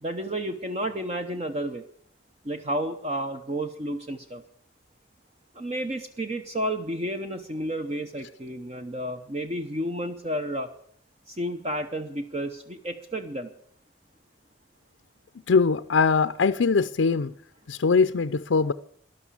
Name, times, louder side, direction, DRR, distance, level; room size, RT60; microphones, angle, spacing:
voice 1, 0.0-1.9 2.4-4.4 5.5-10.7 11.3-13.5, right 1 dB, 30° right, 7 dB, 0.8 m, -31 dB
voice 2, 15.5-17.3 17.7-18.7, left 4 dB, 75° left, 10 dB, 0.5 m, -22 dB
13.5 x 11.0 x 8.4 m, 0.65 s
head